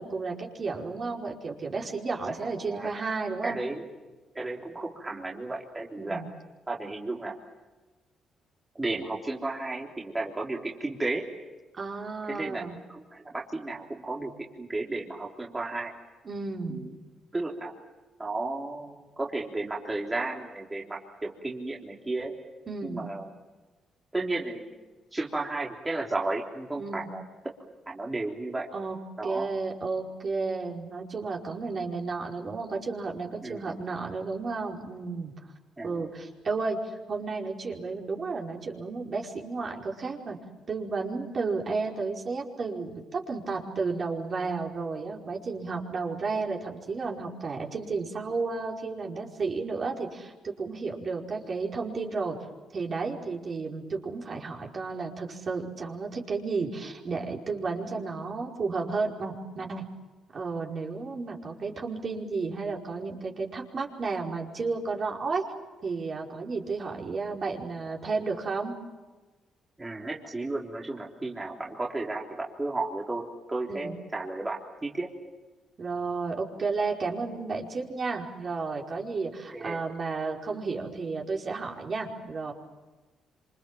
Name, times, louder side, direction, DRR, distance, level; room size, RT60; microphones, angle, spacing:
voice 1, 0.0-3.6 6.0-6.3 11.8-12.8 16.2-16.9 22.7-23.1 26.8-27.1 28.7-29.0 29.2-35.3 35.8-40.4 40.7-52.4 52.7-59.8 60.3-65.4 65.8-68.7 73.7-73.9 75.8-82.5, right 4 dB, 45° right, 0 dB, 5.0 m, -32 dB
voice 2, 2.2-2.9 3.4-3.8 4.4-6.2 6.7-7.4 8.8-11.3 12.3-12.6 12.9-14.3 14.6-15.9 16.7-16.9 17.3-17.7 18.2-22.4 22.8-23.3 24.1-24.7 25.1-27.2 27.9-28.7 29.2-29.5 33.4-33.8 35.8-36.0 69.8-75.1 79.5-79.8, right 2 dB, 20° right, -2 dB, 3.5 m, -33 dB
27.0 x 26.5 x 7.5 m, 1.2 s
cardioid pair, 90°, 0 cm